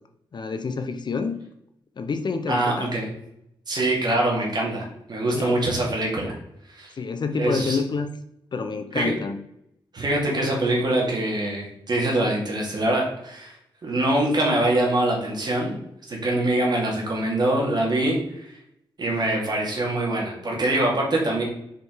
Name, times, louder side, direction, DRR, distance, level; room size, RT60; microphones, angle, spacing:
voice 1, 0.3-1.4 2.0-2.9 5.3-5.7 7.0-8.1 8.5-9.4 20.6-20.7, left 4 dB, 55° left, 7 dB, 0.8 m, -28 dB
voice 2, 2.5-3.1 3.7-6.3 6.7-6.9 7.4-7.8 8.9-9.1 9.9-13.5 13.8-15.8 16.1-18.4 19.0-21.4, right 1 dB, 50° right, -2 dB, 2.4 m, -24 dB
5.1 x 5.0 x 4.7 m, 0.79 s
cardioid pair, 90°, 9 cm